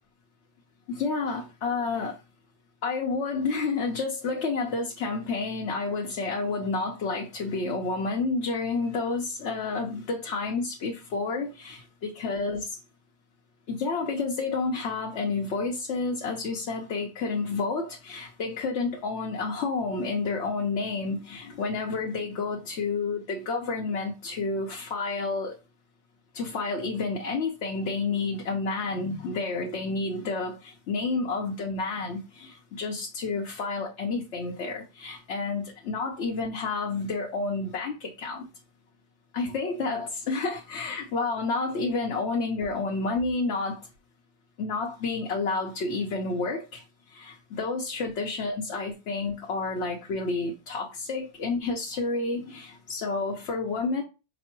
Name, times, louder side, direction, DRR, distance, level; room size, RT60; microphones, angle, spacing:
voice 1, 0.9-2.2 2.8-12.8 13.7-25.5 26.3-38.5 39.3-43.8 44.6-54.0, left 3 dB, 80° left, 1.0 m, -30 dB
5.1 x 2.1 x 4.3 m
omnidirectional pair, 1.2 m